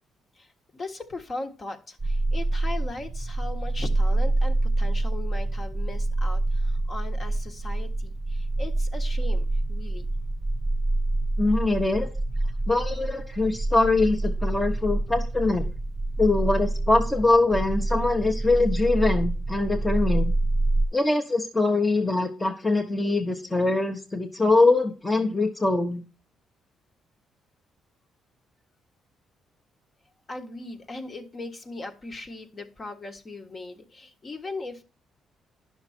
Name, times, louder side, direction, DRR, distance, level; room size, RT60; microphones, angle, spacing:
voice 1, 0.3-10.1 30.3-34.8, left 2 dB, 35° left, 6 dB, 1.5 m, -38 dB
sound 1, 2.0-20.8, right 2 dB, 20° right, 0.7 m, -26 dB
voice 2, 11.4-12.1 12.7-15.7 16.2-20.3 20.9-26.0, left 3 dB, 15° left, 3 dB, 1.1 m, -23 dB
10.5 x 6.1 x 4.3 m, 0.35 s
cardioid pair, 90°, 0 cm